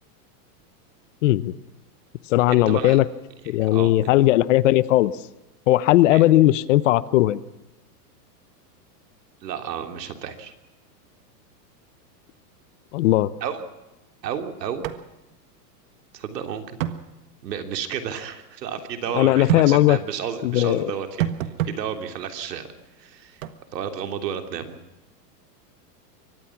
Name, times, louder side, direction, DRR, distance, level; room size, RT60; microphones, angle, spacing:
voice 1, 1.2-1.5 2.3-3.0 3.5-5.1 5.7-7.4 12.9-13.3 19.1-20.0 20.4-20.9, left 15 dB, 50° left, 18 dB, 0.9 m, -18 dB
voice 2, 2.5-3.0 3.6-3.9 6.1-6.2 9.4-10.5 13.4-13.6 14.2-14.8 16.1-16.8 17.4-22.7 23.0-23.4 23.7-24.8, right 8 dB, 85° right, 6 dB, 3.3 m, -32 dB
sound 1, 14.8-15.0 15.3-15.4 16.8-17.0 19.5-19.7 21.2-21.8 23.4-23.5, right 11 dB, 55° right, 1.6 m, -25 dB
24.0 x 18.5 x 6.0 m, 0.99 s
supercardioid pair, 160°, 48 cm